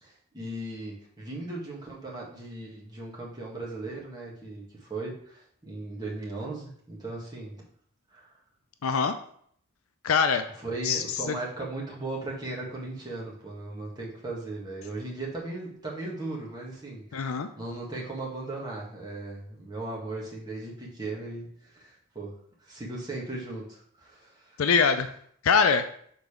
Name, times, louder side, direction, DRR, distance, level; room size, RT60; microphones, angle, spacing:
voice 1, 0.0-7.6 8.1-8.3 10.6-22.4 22.6-24.6, right 2 dB, 20° right, -4 dB, 1.8 m, -37 dB
voice 2, 8.8-9.1 10.0-10.4 10.8-11.0 17.1-17.5 24.6-25.1 25.4-25.8, left 5 dB, 85° left, 8 dB, 0.5 m, -23 dB
6.8 x 4.0 x 5.0 m, 0.63 s
head